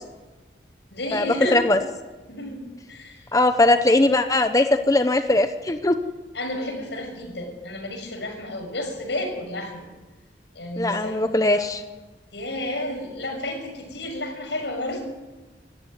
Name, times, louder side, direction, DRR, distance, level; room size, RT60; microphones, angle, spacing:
voice 1, 0.9-1.8 2.3-2.6 2.9-3.2 6.3-9.9 10.5-11.7 12.3-15.0, left 1 dB, 85° left, 3 dB, 6.4 m, -31 dB
voice 2, 3.3-6.0 10.8-11.8, left 2 dB, 20° left, 8 dB, 0.8 m, -20 dB
19.5 x 14.5 x 9.5 m, 1.2 s
head